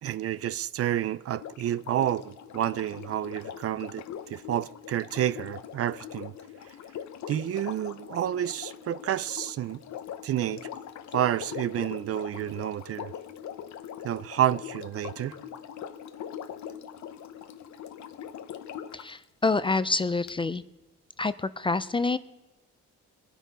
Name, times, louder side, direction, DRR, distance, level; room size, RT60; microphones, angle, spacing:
voice 1, 0.0-4.0 4.3-6.3 7.3-9.8 10.2-10.6 11.1-13.1 14.0-15.3, right 11 dB, 50° right, 0.4 m, -29 dB
Sink (filling or washing), 1.3-19.1 20.3-20.4, left 9 dB, 65° left, 0.8 m, -42 dB
voice 2, 18.9-20.6 21.2-22.2, left 3 dB, 15° left, 0.4 m, -27 dB
21.0 x 10.0 x 4.1 m
cardioid pair, 90°, 30 cm